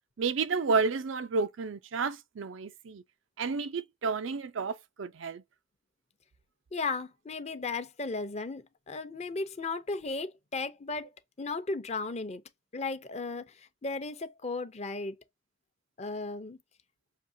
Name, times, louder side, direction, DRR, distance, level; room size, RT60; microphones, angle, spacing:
voice 1, 0.2-3.0 3.4-5.4, right 4 dB, 80° right, 0.5 m, -31 dB
voice 2, 6.7-11.1 11.4-12.4 12.7-15.2 16.0-16.6, left 3 dB, 35° left, 0.6 m, -35 dB
6.6 x 2.8 x 2.7 m
head